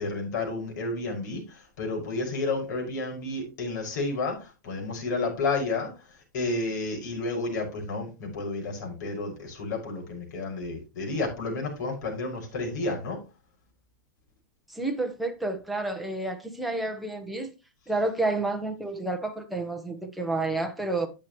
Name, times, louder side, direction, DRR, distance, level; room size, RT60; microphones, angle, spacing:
voice 1, 0.0-5.9 6.3-13.2, left 3 dB, 60° left, 5.8 m, -31 dB
voice 2, 14.7-17.5 17.9-21.1, right 2 dB, ahead, 1.1 m, -30 dB
10.5 x 8.4 x 3.1 m
supercardioid pair, 165°, 10 cm